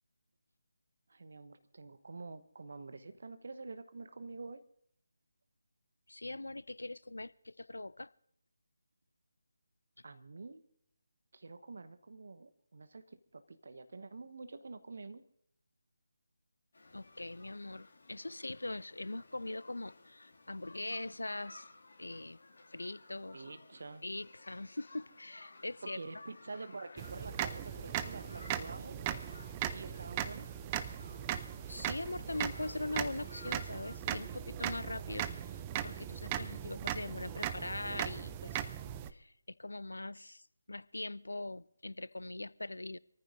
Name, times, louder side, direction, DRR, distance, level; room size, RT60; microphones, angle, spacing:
voice 1, 1.1-4.6 10.0-10.6 11.3-15.2 23.3-24.0 25.8-29.0 29.7-30.5, right 3 dB, 55° right, 1.0 m, -47 dB
voice 2, 6.1-8.1 16.9-21.7 22.0-22.4 22.7-23.4 24.0-26.0 31.7-38.7 39.1-43.0, left 2 dB, 70° left, 0.4 m, -42 dB
sound 1, 16.7-33.9, left 2 dB, 50° left, 2.4 m, -57 dB
sound 2, 27.0-39.1, right 11 dB, 20° right, 0.5 m, -39 dB
27.0 x 14.5 x 2.7 m
figure-of-eight pair, 155°, 0 cm